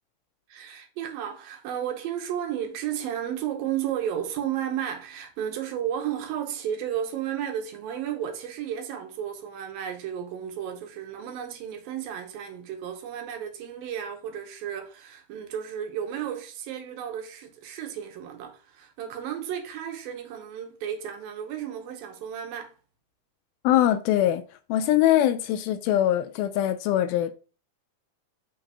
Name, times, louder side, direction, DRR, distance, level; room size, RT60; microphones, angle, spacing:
voice 1, 0.5-22.7, right 9 dB, 75° right, 2.5 m, -33 dB
voice 2, 23.6-24.4 24.7-27.3, left 12 dB, 80° left, 2.3 m, -22 dB
5.9 x 3.8 x 5.4 m
omnidirectional pair, 4.4 m